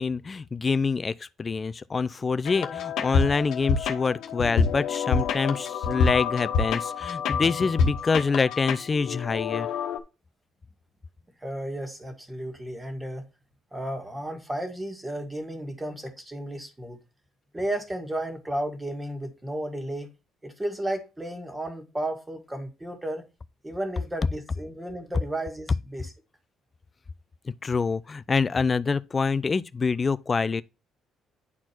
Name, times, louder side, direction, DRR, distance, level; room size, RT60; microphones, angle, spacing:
voice 1, 0.0-9.7 27.5-30.6, left 4 dB, 25° left, 0.4 m, -26 dB
sound 1, 2.5-10.0, left 5 dB, 75° left, 1.2 m, -27 dB
voice 2, 11.4-13.2 13.7-17.0 17.5-20.1 20.4-23.2 23.6-26.1, right 1 dB, 10° right, 1.8 m, -33 dB
9.7 x 4.4 x 4.5 m
cardioid pair, 130°, 0 cm